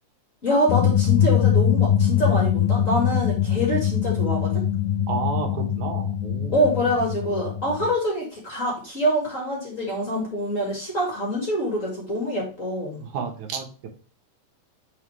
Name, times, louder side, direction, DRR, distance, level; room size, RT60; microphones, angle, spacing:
voice 1, 0.4-4.6 6.5-13.0, equal, 30° left, -1 dB, 1.9 m, -25 dB
sound 1, 0.7-7.9, left 9 dB, 85° left, 2.1 m, -22 dB
voice 2, 5.1-6.6 13.0-13.9, right 5 dB, 80° right, 2 dB, 2.6 m, -31 dB
6.5 x 4.6 x 3.1 m, 0.40 s
omnidirectional pair, 3.4 m